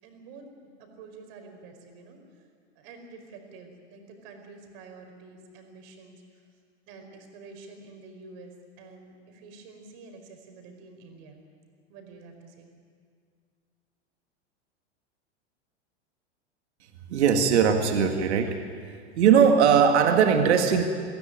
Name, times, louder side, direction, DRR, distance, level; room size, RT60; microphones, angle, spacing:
voice 1, 0.0-6.5 6.9-11.4 11.9-12.7, right 3 dB, 55° right, 4 dB, 5.0 m, -48 dB
voice 2, 17.1-18.6 19.2-20.8, right 7 dB, 75° right, 5 dB, 1.9 m, -20 dB
23.5 x 16.0 x 9.1 m, 2.1 s
hypercardioid pair, 100°, 34 cm